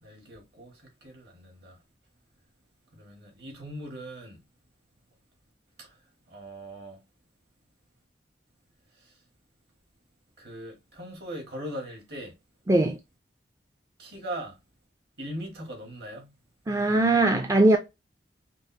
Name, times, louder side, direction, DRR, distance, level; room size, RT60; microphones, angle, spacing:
voice 1, 0.0-1.8 2.9-4.4 5.8-5.9 6.3-7.0 9.0-9.1 10.4-12.3 14.0-14.6 15.2-16.3, right 1 dB, 60° right, 1.9 m, -40 dB
voice 2, 12.7-13.0 16.7-17.8, right 2 dB, 15° right, 0.4 m, -20 dB
5.2 x 2.1 x 2.7 m
head